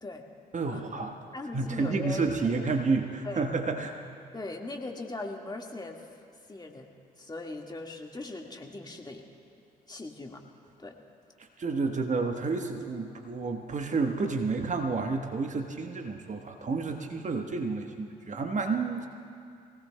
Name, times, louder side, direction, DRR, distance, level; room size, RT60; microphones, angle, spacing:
voice 1, 0.5-1.1 1.5-3.9 11.6-19.1, right 4 dB, 35° right, 4 dB, 1.2 m, -30 dB
voice 2, 1.3-2.3 3.2-3.5 4.3-6.0 6.5-6.9 7.2-9.2 9.9-10.4 10.8-10.9, left 2 dB, 20° left, 2 dB, 1.7 m, -39 dB
23.5 x 17.5 x 2.2 m, 2.4 s
figure-of-eight pair, 45°, 21 cm